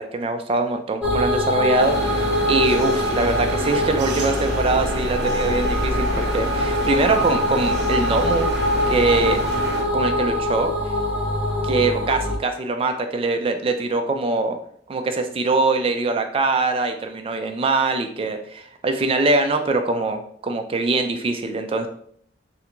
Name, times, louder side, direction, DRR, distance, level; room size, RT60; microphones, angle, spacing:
voice 1, 0.0-8.5 8.9-9.4 9.9-10.7 11.6-14.6 14.9-21.9, right 3 dB, 30° right, 6 dB, 0.3 m, -23 dB
sound 1, 1.0-12.4, equal, 5° right, 0.7 m, -23 dB
sound 2, 1.8-9.8, equal, 65° right, 0.8 m, -30 dB
3.3 x 2.4 x 2.9 m, 0.63 s
head